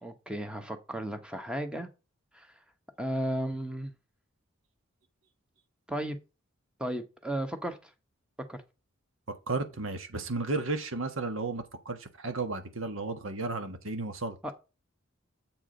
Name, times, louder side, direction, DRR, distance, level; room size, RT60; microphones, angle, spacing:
voice 1, 0.0-1.9 2.3-2.5 3.0-3.9 5.9-6.2 6.8-7.8 8.5-8.6 14.4-14.5, right 1 dB, 5° right, 1.1 m, -34 dB
voice 2, 9.3-14.4, right 3 dB, 70° right, 1.5 m, -33 dB
7.8 x 4.8 x 5.1 m
head